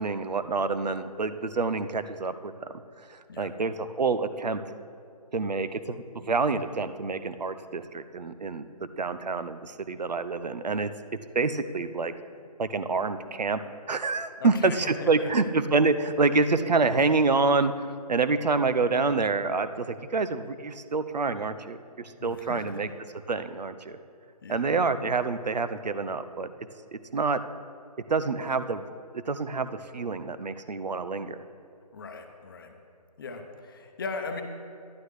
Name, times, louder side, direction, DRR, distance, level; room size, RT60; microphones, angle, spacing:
voice 1, 0.0-2.7 3.1-4.6 5.3-10.9 11.3-12.1 12.6-13.6 13.9-17.7 18.1-22.9 23.3-24.0 24.5-26.5 26.9-27.4 28.1-28.8 29.3-29.7 29.9-31.4, right 4 dB, 85° right, 11 dB, 0.7 m, -27 dB
voice 2, 14.4-15.3 22.2-22.9 24.4-24.7 31.9-32.7 33.2-34.4, left 4 dB, 35° left, 6 dB, 0.8 m, -38 dB
11.5 x 11.0 x 3.2 m, 2.3 s
figure-of-eight pair, 160°, 21 cm